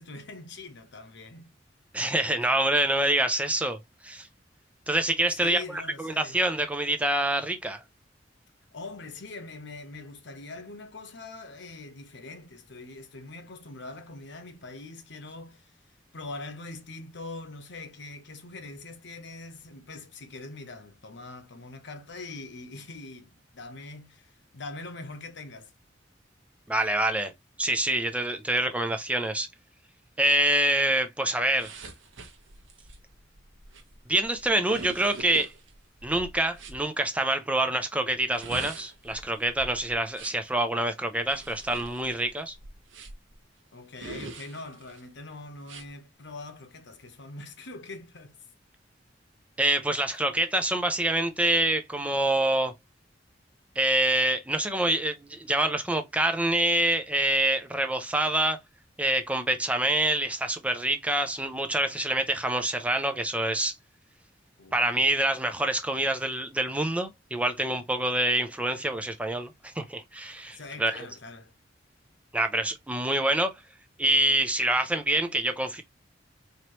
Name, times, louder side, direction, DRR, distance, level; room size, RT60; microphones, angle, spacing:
voice 1, 0.0-1.5 5.4-6.4 8.7-15.7 16.1-25.7 43.7-48.4 64.6-65.2 70.5-71.5, left 3 dB, 65° left, 0.9 m, -43 dB
voice 2, 1.9-3.8 4.0-4.3 4.9-7.8 26.7-27.3 27.6-29.5 30.2-31.7 34.1-35.5 36.0-42.5 49.6-52.7 53.8-58.6 59.0-63.7 64.7-71.0 72.3-73.5 74.0-75.8, right 1 dB, 5° right, 0.5 m, -26 dB
sound 1, 31.5-36.8 38.2-40.5 41.2-43.3 43.9-45.0 45.6-45.9, right 3 dB, 80° right, 1.0 m, -44 dB
4.6 x 2.9 x 3.0 m
head